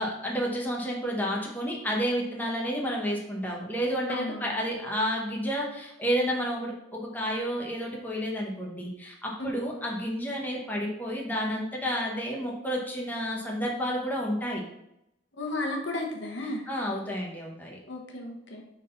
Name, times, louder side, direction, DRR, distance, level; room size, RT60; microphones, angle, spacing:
voice 1, 0.0-14.6 16.7-17.8, equal, 10° left, -2 dB, 1.1 m, -30 dB
voice 2, 4.1-4.6 15.4-16.6 17.9-18.6, left 2 dB, 80° left, 1 dB, 1.1 m, -33 dB
6.4 x 3.8 x 3.9 m, 0.81 s
head